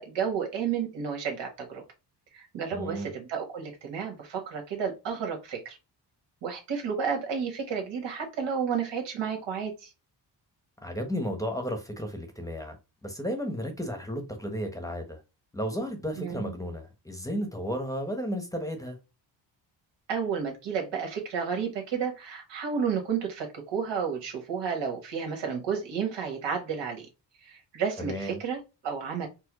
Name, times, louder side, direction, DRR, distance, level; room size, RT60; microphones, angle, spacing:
voice 1, 0.0-1.8 2.3-5.8 6.4-9.9 16.2-16.5 20.1-27.1 27.4-29.3, right 6 dB, 75° right, 1.4 m, -31 dB
voice 2, 2.7-3.1 10.8-12.8 13.0-15.2 15.5-19.0 28.0-28.4, equal, 10° left, 0.9 m, -33 dB
4.4 x 2.0 x 3.0 m
cardioid pair, 95°, 43 cm